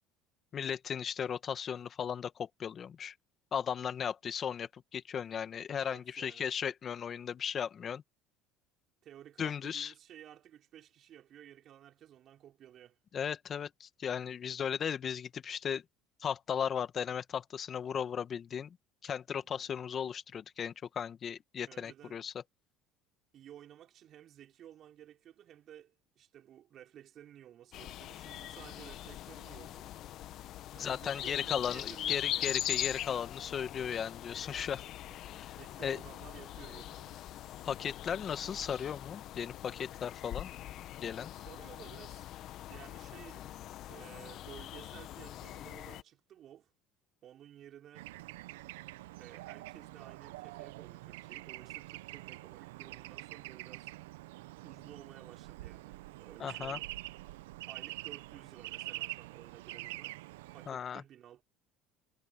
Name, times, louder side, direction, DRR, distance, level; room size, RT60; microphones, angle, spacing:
voice 1, 0.5-3.1 3.5-8.0 9.4-9.9 13.1-15.8 16.2-18.8 19.0-22.3 30.8-34.8 35.4-35.5 35.8-36.0 37.6-40.5 41.0-41.3 56.4-56.8 60.7-61.0, left 8 dB, 40° left, 1.7 m, -36 dB
voice 2, 5.7-6.5 9.0-13.0 19.4-19.7 21.7-22.2 23.3-29.9 30.7-32.6 35.0-37.2 41.3-42.3 42.6-46.7 47.2-48.1 49.2-53.9 54.6-56.9 57.7-60.2 60.5-61.4, right 11 dB, 50° right, 4.7 m, -54 dB
sound 1, 27.7-46.0, left 13 dB, 60° left, 1.4 m, -41 dB
Bird / Traffic noise roadway noise, 47.9-60.7, right 18 dB, 85° right, 0.6 m, -45 dB
supercardioid pair, 85°, 0 cm